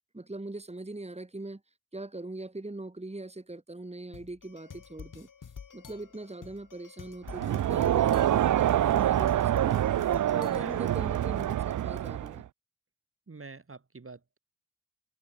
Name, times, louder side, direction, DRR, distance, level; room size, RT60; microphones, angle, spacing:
voice 1, 0.1-1.6 1.9-5.3 5.7-9.9 10.3-12.5, right 2 dB, 20° right, 2.5 m, -41 dB
sound 1, 4.1-11.0, left 6 dB, 80° left, 6.7 m, -49 dB
Crowd, 7.3-12.5, right 12 dB, 75° right, 0.5 m, -26 dB
voice 2, 10.5-10.8 13.3-14.4, right 4 dB, 45° right, 2.6 m, -45 dB
open air
cardioid pair, 40°, 31 cm